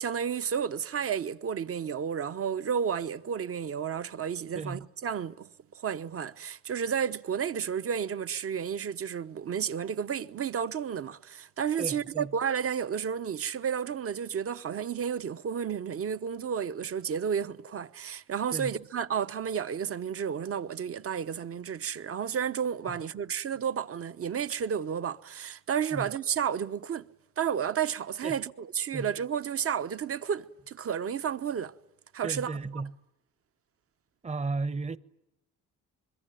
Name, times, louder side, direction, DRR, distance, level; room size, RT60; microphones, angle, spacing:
voice 1, 0.0-5.5 5.7-27.1 27.4-31.7 32.1-32.5, right 7 dB, 50° right, 1.1 m, -32 dB
voice 2, 11.8-12.3 18.5-18.7 22.9-23.0 25.9-26.1 28.2-28.4 28.9-29.1 32.2-32.9 34.2-35.0, right 3 dB, 20° right, 1.0 m, -34 dB
25.5 x 22.5 x 9.2 m
cardioid pair, 90°, 30 cm